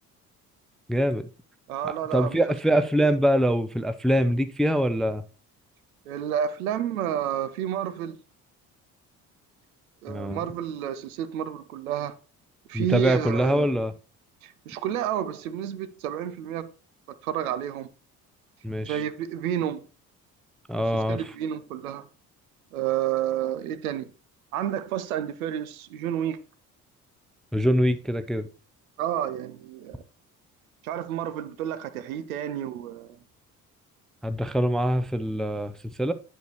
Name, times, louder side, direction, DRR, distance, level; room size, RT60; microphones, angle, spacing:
voice 1, 0.9-1.3 1.8-5.2 10.1-10.4 12.7-13.9 18.6-19.0 20.7-21.2 27.5-28.5 34.2-36.1, equal, ahead, 0.4 m, -24 dB
voice 2, 1.7-2.4 6.1-8.2 10.0-12.1 12.7-13.7 14.4-16.7 17.1-17.9 18.8-19.8 21.1-22.1 22.7-24.1 24.5-26.4 29.0-30.0 30.8-33.2, right 10 dB, 70° right, 0.7 m, -30 dB
10.5 x 6.6 x 3.0 m
figure-of-eight pair, 50°, 44 cm